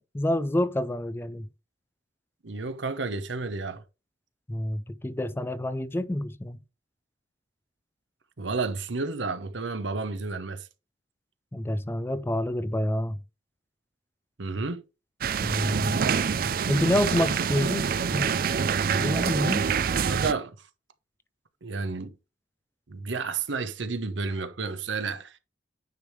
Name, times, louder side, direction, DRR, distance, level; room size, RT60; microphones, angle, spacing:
voice 1, 0.0-1.5 4.5-6.6 11.5-13.2 15.4-16.0 16.4-18.4 18.9-19.7, left 1 dB, 15° left, 0.4 m, -28 dB
voice 2, 2.4-3.8 8.4-10.7 14.4-14.8 20.1-20.5 21.6-22.1 22.9-25.3, right 4 dB, 90° right, 0.9 m, -31 dB
sound 1, 15.2-20.3, right 6 dB, 50° right, 0.4 m, -26 dB
9.4 x 3.5 x 4.6 m
head